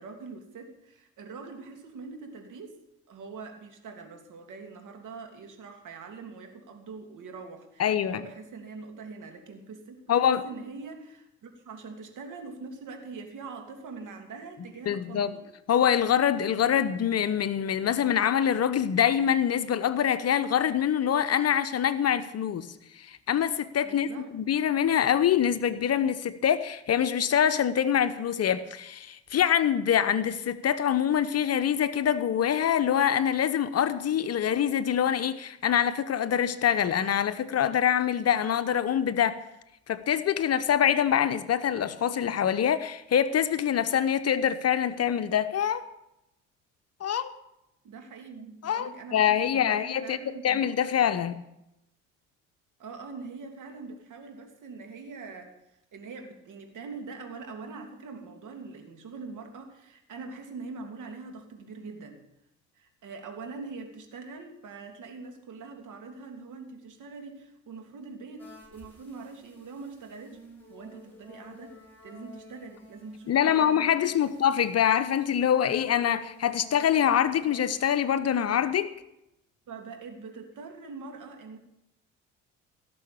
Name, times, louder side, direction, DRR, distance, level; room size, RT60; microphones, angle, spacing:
voice 1, 0.0-2.8 3.1-15.5 23.8-24.3 47.8-50.7 52.8-62.2 62.7-70.4 70.7-73.8 74.2-74.3 79.7-81.6, right 4 dB, 50° right, 5 dB, 3.0 m, -43 dB
voice 2, 7.8-8.2 10.1-10.4 14.9-15.3 15.7-22.7 23.0-39.4 39.9-45.9 47.0-47.3 48.6-51.4 73.3-78.9, left 9 dB, 40° left, 12 dB, 0.9 m, -25 dB
sound 1, 68.4-77.9, equal, 5° left, 6.4 m, -53 dB
17.0 x 7.0 x 8.6 m, 0.86 s
hypercardioid pair, 55°, 38 cm